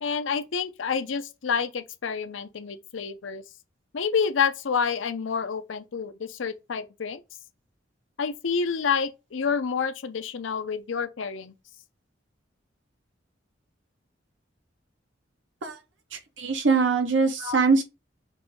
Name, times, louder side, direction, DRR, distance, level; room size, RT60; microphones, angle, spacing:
voice 1, 0.0-3.4 3.9-7.2 8.2-11.5 17.4-17.6, left 6 dB, 80° left, 0.6 m, -28 dB
voice 2, 16.1-17.8, right 4 dB, 70° right, 0.8 m, -22 dB
5.3 x 2.6 x 3.4 m
head